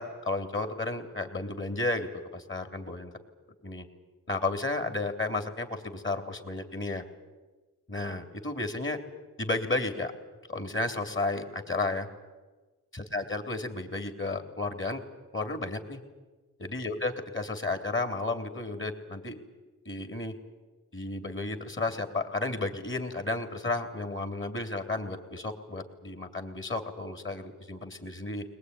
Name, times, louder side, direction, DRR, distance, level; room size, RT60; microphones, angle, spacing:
voice 1, 0.0-3.1 3.6-3.9 4.3-7.0 7.9-9.0 9.4-10.1 10.5-12.1 12.9-15.0 15.3-16.0 16.6-19.4 19.9-20.3 20.9-28.4, left 2 dB, 35° left, 6 dB, 3.4 m, -33 dB
21.0 x 20.5 x 9.7 m, 1.3 s
cardioid pair, 70°, 34 cm